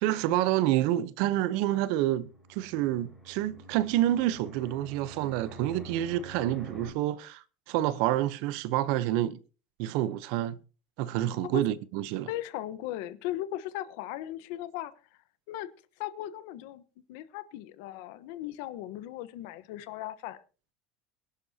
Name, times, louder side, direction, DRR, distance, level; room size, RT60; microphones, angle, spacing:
voice 1, 0.0-9.4 9.8-10.6 11.0-12.3, right 13 dB, 55° right, 0.8 m, -28 dB
Fixed-wing aircraft airplane, 2.2-6.9, right 1 dB, 5° right, 5.0 m, -47 dB
voice 2, 12.3-14.9 15.5-15.7 16.0-16.8 17.1-20.4, left 14 dB, 60° left, 1.1 m, -37 dB
22.5 x 11.5 x 2.8 m
cardioid pair, 180°, 0 cm